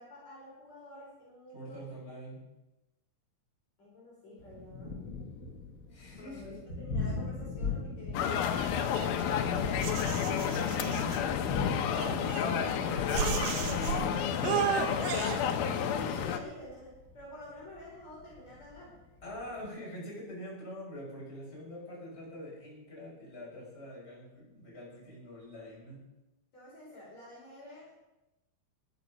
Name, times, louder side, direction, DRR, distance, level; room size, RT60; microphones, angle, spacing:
voice 1, 0.0-1.9 3.8-5.0 6.2-9.0 15.4-18.9 26.5-27.9, left 1 dB, 45° left, -5 dB, 5.9 m, -49 dB
voice 2, 1.5-2.4 5.9-6.6 10.2-11.3 11.9-14.7 19.2-26.0, equal, 15° left, -5 dB, 6.4 m, -44 dB
Thunder, 4.4-19.7, left 4 dB, 65° left, 0.8 m, -40 dB
sound 1, 8.1-16.4, left 8 dB, 80° left, 2.8 m, -31 dB
sound 2, 8.6-9.4 9.8-11.2 12.0-12.7 13.1-14.1 14.4-15.4, right 8 dB, 70° right, 2.8 m, -34 dB
16.5 x 11.5 x 5.4 m, 0.99 s
omnidirectional pair, 4.2 m